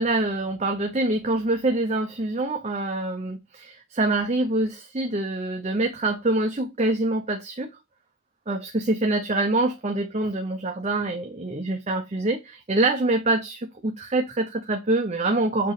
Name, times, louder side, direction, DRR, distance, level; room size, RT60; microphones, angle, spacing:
voice 1, 0.0-7.7 8.5-15.7, right 2 dB, 35° right, 0.8 m, -25 dB
8.0 x 3.1 x 4.9 m
head